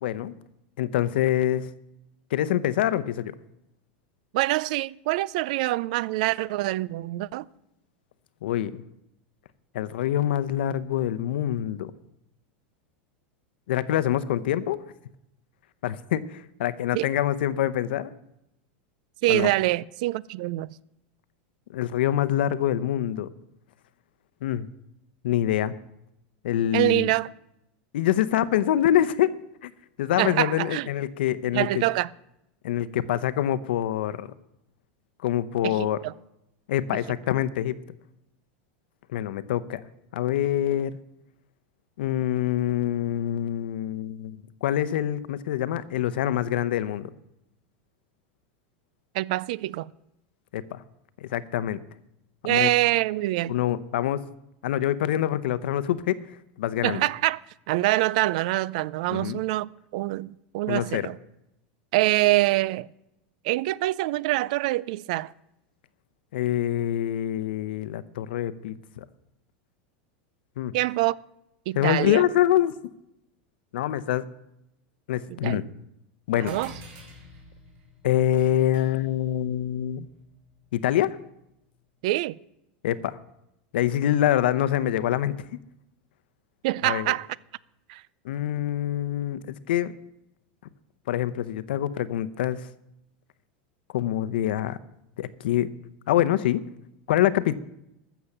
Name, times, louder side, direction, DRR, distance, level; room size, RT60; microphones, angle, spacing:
voice 1, 0.0-0.3 0.8-1.7 2.3-3.3 8.4-8.8 9.7-11.9 13.7-14.8 15.8-18.1 19.3-19.5 21.7-23.3 24.4-24.7 25.2-25.7 26.4-27.1 27.9-29.3 29.6-29.7 30.0-31.8 32.6-34.3 35.2-36.0 36.7-37.8 39.1-39.8 40.1-40.9 42.0-47.1 50.5-50.8 51.2-51.8 52.4-52.7 53.5-54.2 54.6-56.2 56.6-57.0 59.1-59.4 60.7-61.1 66.3-69.0 70.6-70.7 71.8-72.7 73.7-74.2 75.1-75.6 76.3-76.6 78.0-80.1 80.7-81.2 82.8-83.2 83.7-85.4 86.8-87.1 88.2-89.9 91.1-92.7 93.9-94.8 95.2-95.7 96.1-96.6 97.1-97.5, left 12 dB, 85° left, 0.8 m, -25 dB
voice 2, 4.3-7.5 16.9-17.1 19.2-20.7 26.7-27.3 30.2-30.9 31.5-32.1 35.6-36.1 49.1-49.9 52.4-53.6 56.8-57.4 57.7-61.2 61.9-62.9 63.4-65.3 70.7-71.2 71.7-72.2 75.3-75.6 76.4-76.7 82.0-82.4 86.6-87.3 87.9-88.0, right 18 dB, 50° right, 0.3 m, -25 dB
sound 1, 76.5-81.4, left 1 dB, 35° right, 4.4 m, -50 dB
13.5 x 7.0 x 7.2 m
supercardioid pair, 175°, 5 cm